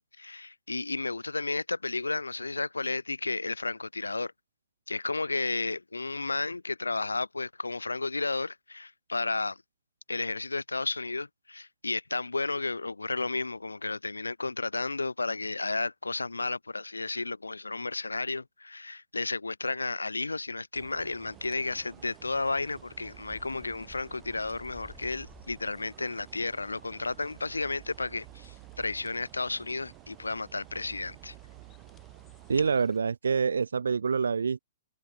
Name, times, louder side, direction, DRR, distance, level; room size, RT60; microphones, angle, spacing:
voice 1, 0.0-4.3 4.9-9.6 10.1-31.3, left 3 dB, 90° left, 0.3 m, -33 dB
sound 1, 20.7-32.7, right 27 dB, 35° right, 2.8 m, -52 dB
sound 2, 21.2-33.0, left 9 dB, 20° left, 2.8 m, -59 dB
voice 2, 32.5-34.6, right 5 dB, 75° right, 0.3 m, -26 dB
figure-of-eight pair, 120°, 0 cm